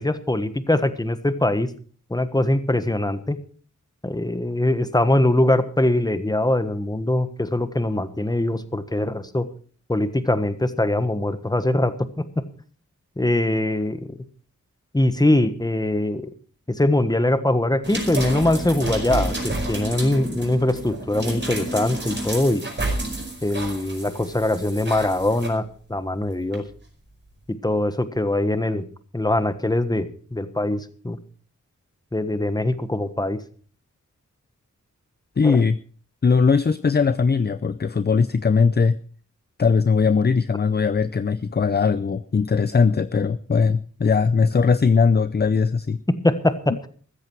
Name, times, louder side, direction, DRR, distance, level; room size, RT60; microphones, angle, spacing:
voice 1, 0.0-1.7 2.1-3.4 4.0-9.4 9.9-11.9 13.2-14.0 14.9-16.3 16.7-22.6 23.4-25.6 25.9-26.6 27.5-28.8 29.1-31.2 32.1-33.4 35.4-35.6 46.2-46.5, left 1 dB, 15° left, 11 dB, 1.4 m, -22 dB
sound 1, 17.8-25.5 26.5-26.6, right 1 dB, 35° right, 5.2 m, -30 dB
voice 2, 35.4-35.8 36.2-39.0 39.6-46.0, left 5 dB, 35° left, 14 dB, 0.6 m, -19 dB
14.5 x 14.0 x 4.7 m, 0.43 s
wide cardioid pair, 105°, 31 cm